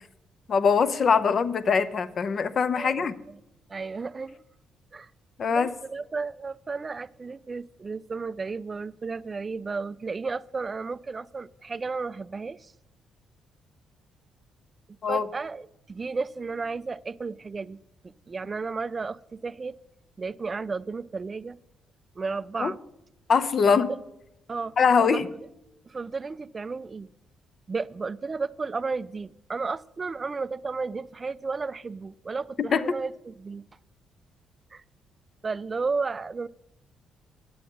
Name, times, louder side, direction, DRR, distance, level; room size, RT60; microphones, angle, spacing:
voice 1, 0.5-3.1 5.4-5.7 15.0-15.2 22.6-22.7 23.3-23.9 24.8-25.3 32.6-32.9, left 6 dB, 50° left, 13 dB, 0.6 m, -22 dB
voice 2, 2.7-3.4 3.7-4.4 4.9-5.1 5.5-12.7 15.1-17.8 18.3-19.8 20.2-21.6 22.2-22.8 23.6-24.0 24.5-25.2 25.9-27.1 27.7-33.6 34.7-34.8 35.4-36.5, right 4 dB, 30° right, 18 dB, 0.3 m, -33 dB
8.5 x 7.7 x 6.4 m, 0.86 s
cardioid pair, 90°, 0 cm